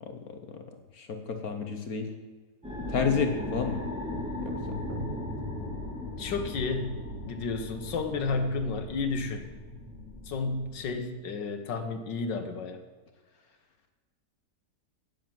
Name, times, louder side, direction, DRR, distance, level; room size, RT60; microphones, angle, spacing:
voice 1, 0.0-0.6 0.9-2.1 2.9-3.8 4.4-4.8, left 6 dB, 60° left, 6 dB, 1.5 m, -31 dB
sound 1, 2.6-10.9, left 1 dB, 5° right, 3.1 m, -37 dB
sound 2, 4.9-6.5, right 5 dB, 50° right, 0.5 m, -44 dB
voice 2, 6.2-7.0 7.3-9.5 10.3-12.8, left 4 dB, 85° left, 6 dB, 1.8 m, -32 dB
10.5 x 9.4 x 7.5 m, 1.4 s
omnidirectional pair, 1.9 m